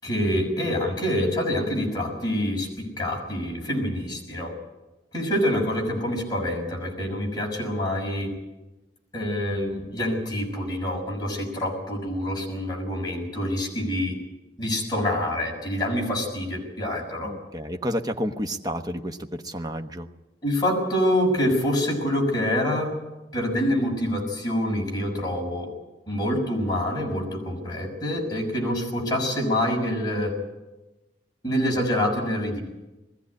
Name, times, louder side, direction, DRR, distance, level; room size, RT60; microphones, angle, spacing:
voice 1, 0.0-4.5 5.1-8.3 9.1-14.2 14.6-17.3 20.4-22.9 23.3-25.7 26.1-30.3 31.4-32.6, left 1 dB, 20° left, -1 dB, 6.2 m, -26 dB
voice 2, 17.2-20.1, equal, 20° right, 5 dB, 1.1 m, -30 dB
21.0 x 15.5 x 9.8 m, 1.1 s
head